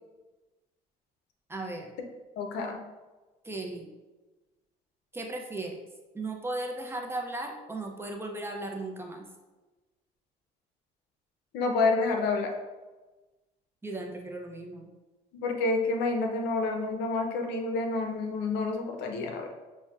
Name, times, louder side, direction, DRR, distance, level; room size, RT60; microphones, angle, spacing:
voice 1, 1.5-1.9 3.4-3.9 5.1-5.8 6.1-9.3 13.8-14.9, right 2 dB, 15° right, 2 dB, 0.5 m, -36 dB
voice 2, 2.4-2.8 11.5-12.5 15.4-19.5, left 3 dB, 80° left, 3 dB, 0.6 m, -28 dB
5.7 x 2.1 x 2.3 m, 1.2 s
cardioid pair, 110°, 17 cm